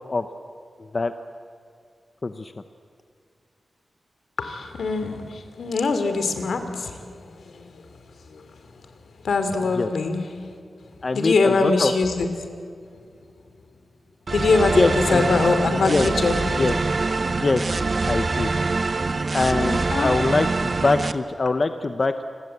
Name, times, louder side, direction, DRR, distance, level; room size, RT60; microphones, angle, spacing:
voice 1, 0.8-1.1 2.2-2.5 9.6-9.9 11.0-11.9 14.4-15.4 15.6-16.1 16.5-16.7 17.2-18.5 19.3-22.2, left 3 dB, 35° left, 8 dB, 0.8 m, -24 dB
voice 2, 4.4-7.8 8.3-8.4 9.2-10.3 11.1-12.3 14.3-16.7 19.6-20.1, left 3 dB, 75° left, 8 dB, 2.9 m, -23 dB
sound 1, 14.3-21.1, right 3 dB, 40° right, 0.8 m, -24 dB
29.0 x 22.0 x 8.0 m, 2.3 s
wide cardioid pair, 135°, 0 cm